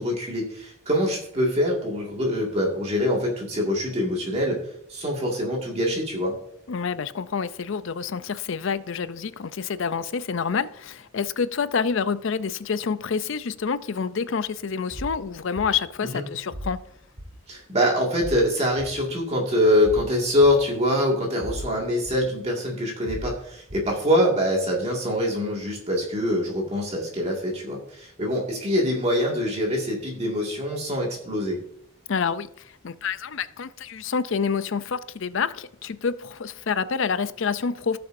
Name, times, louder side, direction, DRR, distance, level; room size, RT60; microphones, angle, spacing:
voice 1, 0.0-4.6 4.9-6.3 16.1-16.2 17.5-31.6, left 1 dB, 30° right, 2.0 m, -24 dB
voice 2, 6.7-16.8 32.1-38.0, left 6 dB, 60° left, 0.5 m, -28 dB
sound 1, 14.9-15.1 15.6-15.7 16.5-16.8 17.2-17.3 18.2-18.4 18.8-18.9 19.8-20.0 20.4-20.5 21.4-21.7 22.0-22.1 23.1-23.3 23.7-23.8, equal, 50° right, 2.7 m, -35 dB
17.5 x 6.8 x 2.6 m
head